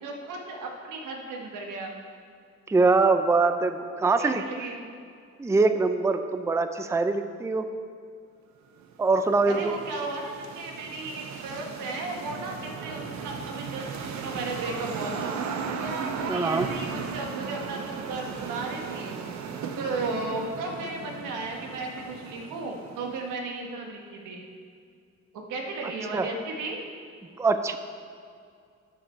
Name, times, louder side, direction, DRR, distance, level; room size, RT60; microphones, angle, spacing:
voice 1, 0.0-2.0 4.2-4.9 9.4-15.4 15.8-19.2 19.8-24.4 25.3-26.8, right 3 dB, 90° right, 1 dB, 1.5 m, -35 dB
voice 2, 2.7-4.4 5.4-7.7 9.0-9.8 16.3-16.7 26.1-26.3 27.4-27.8, right 3 dB, 10° right, 9 dB, 0.5 m, -23 dB
sound 1, 8.8-23.3, right 6 dB, 70° right, 0.9 m, -36 dB
12.0 x 6.5 x 4.5 m, 2.3 s
cardioid pair, 90°, 30 cm